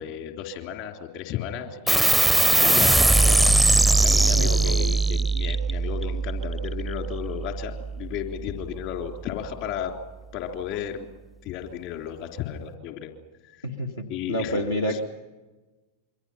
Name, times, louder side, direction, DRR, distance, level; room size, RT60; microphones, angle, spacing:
voice 1, 0.0-2.2 2.6-3.5 4.0-9.9 10.3-11.1 11.4-13.1 13.5-13.6 14.1-14.6 14.9-15.0, left 9 dB, 45° left, 4 dB, 3.5 m, -34 dB
sound 1, 1.9-8.8, right 2 dB, ahead, 0.7 m, -21 dB
voice 2, 4.3-4.9 13.6-13.9 14.3-15.0, equal, 75° left, 1 dB, 2.2 m, -28 dB
27.5 x 24.0 x 5.8 m, 1.2 s
figure-of-eight pair, 90°, 0 cm